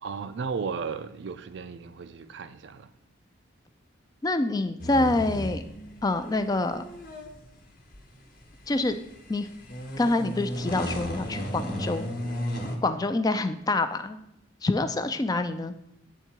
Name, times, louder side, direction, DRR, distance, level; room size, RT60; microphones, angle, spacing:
voice 1, 0.0-2.9, right 5 dB, 60° right, 0.4 m, -35 dB
voice 2, 4.2-5.6 6.0-6.8 8.7-9.0 9.3-9.5 10.0-12.1 12.8-14.2 14.6-15.7, left 2 dB, 20° left, 0.3 m, -26 dB
sound 1, 4.8-12.8, equal, 45° left, 0.9 m, -35 dB
8.0 x 3.7 x 4.5 m
head